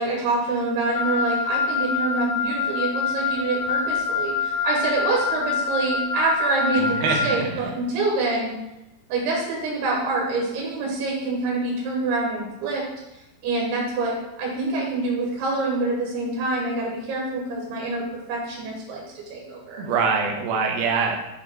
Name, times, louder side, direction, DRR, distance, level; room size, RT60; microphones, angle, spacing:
voice 1, 0.0-8.5 9.1-12.8 13.4-18.0 18.3-19.9, right 3 dB, 90° right, -2 dB, 3.1 m, -26 dB
Wind instrument woodwind instrument, 0.9-7.4, left 5 dB, 80° left, 2.5 m, -25 dB
voice 2, 6.8-7.5 19.8-21.2, right 5 dB, 75° right, 1 dB, 2.0 m, -24 dB
6.7 x 4.5 x 3.4 m, 0.94 s
omnidirectional pair, 4.5 m